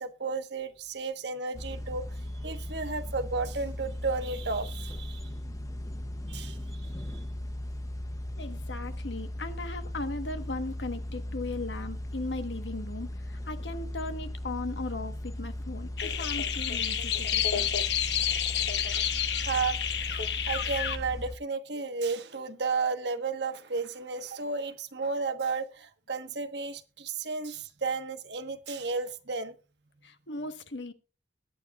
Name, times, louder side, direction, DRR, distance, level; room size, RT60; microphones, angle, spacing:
voice 1, 0.0-5.3 6.3-6.9 19.4-19.8 20.5-29.5, right 4 dB, 70° right, 1.3 m, -33 dB
sound 1, 1.5-21.4, left 1 dB, 20° left, 0.8 m, -37 dB
voice 2, 8.4-17.7 30.0-30.9, left 2 dB, 85° left, 1.3 m, -37 dB
sound 2, 16.0-21.0, left 9 dB, 65° left, 1.0 m, -29 dB
21.5 x 9.3 x 2.4 m
head